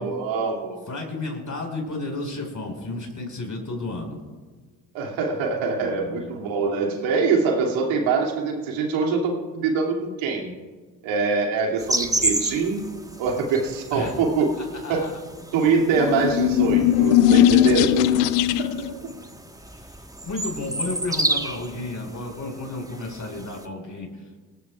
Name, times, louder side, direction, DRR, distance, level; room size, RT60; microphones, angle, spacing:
voice 1, 0.0-0.8 4.9-10.5 11.0-12.8 13.2-14.5 14.9-15.1 15.5-18.1 18.6-18.7, right 4 dB, 70° right, 0 dB, 2.7 m, -24 dB
voice 2, 0.9-4.2 5.7-6.4 13.9-14.2 14.6-15.1 19.7-19.9 20.2-24.4, left 2 dB, 40° left, 1 dB, 4.8 m, -32 dB
sound 1, 11.8-23.7, right 1 dB, 5° right, 1.3 m, -31 dB
sound 2, 15.8-18.9, left 11 dB, 75° left, 0.7 m, -18 dB
26.0 x 13.5 x 2.4 m, 1.4 s
hypercardioid pair, 45°, 49 cm